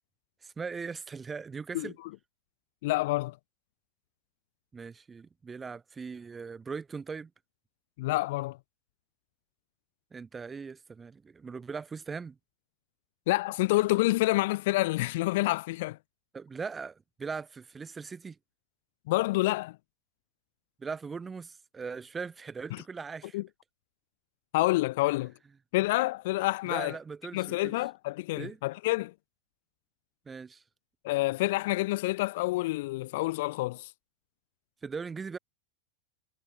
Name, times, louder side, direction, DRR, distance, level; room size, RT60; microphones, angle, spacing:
voice 1, 0.4-2.0 4.7-7.3 10.1-12.4 16.3-18.4 20.8-23.4 26.6-27.8 28.4-28.6 30.3-30.6 34.8-35.4, right 5 dB, 15° right, 2.7 m, -39 dB
voice 2, 2.8-3.4 8.0-8.6 13.3-16.0 19.1-19.8 22.7-22.8 23.3-23.5 24.5-25.3 25.7-27.0 27.3-29.1 31.0-33.9, left 19 dB, 50° left, 0.7 m, -28 dB
figure-of-eight pair, 90°, 0 cm